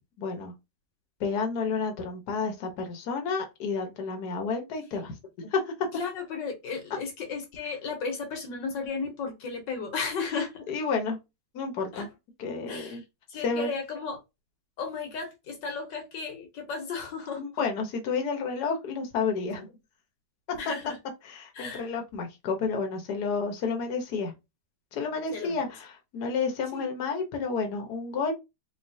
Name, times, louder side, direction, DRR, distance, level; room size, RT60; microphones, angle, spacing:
voice 1, 0.2-0.5 1.2-5.7 10.7-11.2 11.5-12.1 12.4-13.0 13.4-13.7 17.4-19.7 21.2-24.3 24.9-28.3, left 4 dB, 65° left, 1.5 m, -30 dB
voice 2, 5.9-10.6 11.9-12.0 12.7-14.2 14.8-17.7 20.6-21.0 21.5-21.9 25.3-25.6 26.7-26.9, left 5 dB, 85° left, 1.8 m, -34 dB
4.2 x 3.2 x 2.7 m
omnidirectional pair, 1.9 m